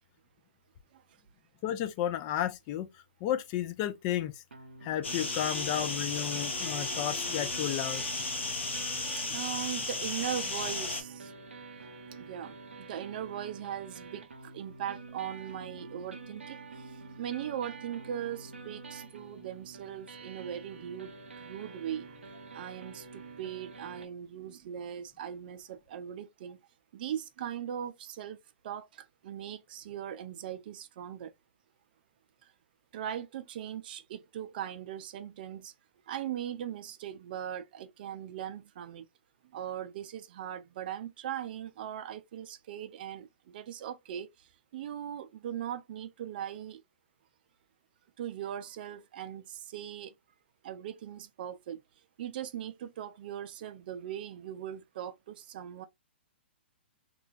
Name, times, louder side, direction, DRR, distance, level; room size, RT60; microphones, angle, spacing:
voice 1, 1.6-2.9 3.2-4.3 4.8-8.1, left 11 dB, 35° left, 0.4 m, -32 dB
sound 1, 4.5-24.1, right 4 dB, 90° right, 0.7 m, -47 dB
sound 2, 5.0-11.0, left 3 dB, 85° left, 0.9 m, -34 dB
voice 2, 9.2-11.3 12.1-22.1 22.5-26.6 26.9-31.3 32.4-32.5 32.9-35.7 36.1-39.1 39.5-46.8 48.2-50.1 50.6-51.8 52.2-55.9, right 10 dB, 50° right, 0.4 m, -40 dB
3.0 x 2.3 x 2.3 m
hypercardioid pair, 125°, 6 cm